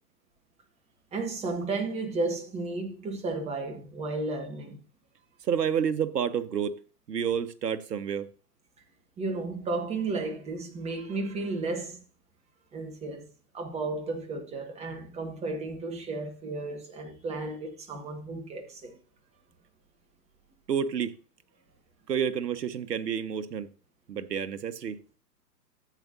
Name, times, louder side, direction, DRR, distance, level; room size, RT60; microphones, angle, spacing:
voice 1, 1.1-4.8 9.2-12.0 12.7-13.3 13.5-18.9, right 3 dB, 10° right, 1.6 m, -33 dB
voice 2, 5.5-6.8 7.1-8.3 20.7-21.2 22.1-23.7 24.1-25.0, right 8 dB, 70° right, 1.2 m, -29 dB
13.5 x 8.4 x 2.7 m
hypercardioid pair, 130°, 50 cm